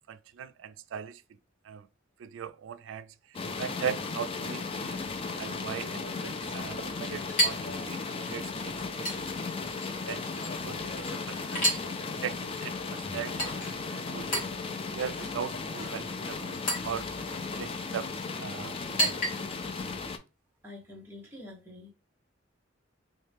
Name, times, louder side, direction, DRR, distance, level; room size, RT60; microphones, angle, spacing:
voice 1, 0.1-1.2 1.6-1.9 2.2-3.1 3.6-5.0 5.4-9.1 9.4-9.5 10.1-11.6 12.2-13.5 13.9-14.5 14.9-17.1 17.6-18.1 18.4-19.2, right 7 dB, 70° right, 0.3 m, -39 dB
sound 1, 3.3-20.2, left 4 dB, 30° left, 0.4 m, -36 dB
Chink clink, 4.9-19.8, equal, 45° left, 2.0 m, -36 dB
voice 2, 20.6-21.9, left 2 dB, 10° right, 1.2 m, -46 dB
3.1 x 2.8 x 3.4 m
head